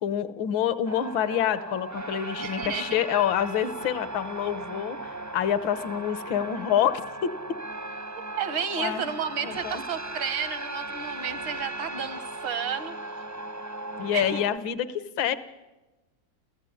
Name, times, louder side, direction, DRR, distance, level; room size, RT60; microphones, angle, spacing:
voice 1, 0.0-7.3 8.8-9.0 9.4-9.8 14.0-15.4, left 10 dB, 80° left, 14 dB, 1.7 m, -27 dB
sound 1, 0.9-14.6, right 2 dB, 25° right, 0.4 m, -37 dB
voice 2, 2.4-3.0 8.2-13.2 14.1-14.4, right 7 dB, 85° right, 13 dB, 2.2 m, -32 dB
29.0 x 15.0 x 9.5 m, 1.1 s
omnidirectional pair, 2.1 m